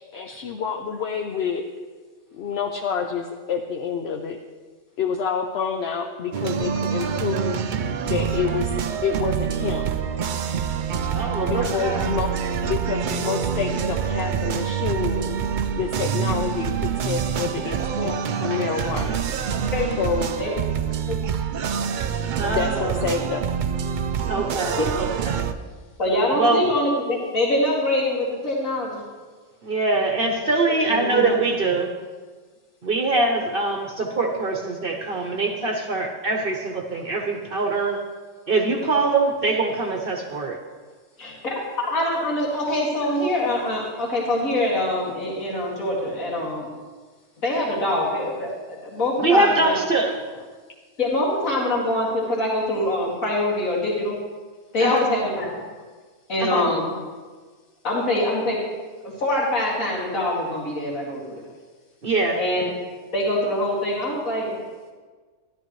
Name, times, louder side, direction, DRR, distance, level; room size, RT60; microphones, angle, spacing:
voice 1, 0.1-1.7 2.3-4.4 5.0-7.7 8.0-8.7 9.0-9.8 11.5-12.3 12.6-15.4 15.8-19.2 20.0-20.3 22.5-23.5, left 6 dB, 60° left, 3 dB, 0.8 m, -28 dB
sound 1, 6.3-25.5, right 7 dB, 75° right, 0.4 m, -26 dB
voice 2, 11.1-12.1 18.5-18.6 22.3-23.0 24.3-25.5 26.3-26.6 29.6-31.9 32.8-38.0 38.5-40.6 49.2-50.2 54.8-55.2 56.4-56.8 62.0-62.4, right 3 dB, 45° right, 1 dB, 1.0 m, -23 dB
voice 3, 26.0-29.0 30.9-31.2 41.2-46.7 47.4-49.8 51.0-54.2 54.7-55.5 56.3-56.9 57.8-58.6 59.0-61.4 62.4-62.6 63.1-64.6, left 1 dB, 85° left, -5 dB, 2.7 m, -24 dB
13.5 x 11.5 x 3.1 m, 1.4 s
omnidirectional pair, 1.4 m